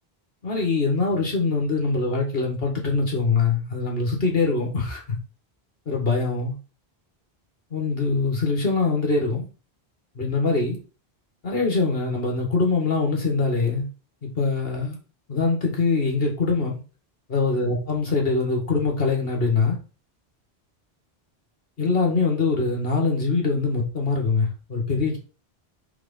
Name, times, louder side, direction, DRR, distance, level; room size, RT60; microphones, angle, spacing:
voice 1, 0.4-5.0 5.9-6.5 7.7-9.5 10.2-10.8 11.4-13.9 14.4-15.0 15.3-16.8 17.3-19.8 21.8-25.2, left 4 dB, 65° left, 2.0 m, -23 dB
4.8 x 3.7 x 5.4 m
omnidirectional pair, 1.1 m